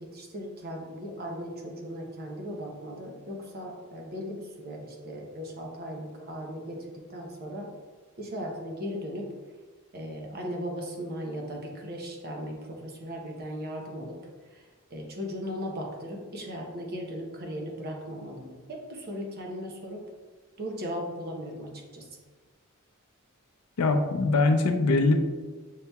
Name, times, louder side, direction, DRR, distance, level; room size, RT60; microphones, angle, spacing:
voice 1, 0.1-6.8 7.1-7.7 8.2-9.3 9.9-14.1 14.5-14.6 14.9-20.0 20.6-22.1, equal, 45° right, 1 dB, 0.7 m, -37 dB
voice 2, 23.8-25.2, left 3 dB, 90° left, 6 dB, 0.5 m, -22 dB
6.5 x 2.8 x 2.2 m, 1.4 s
head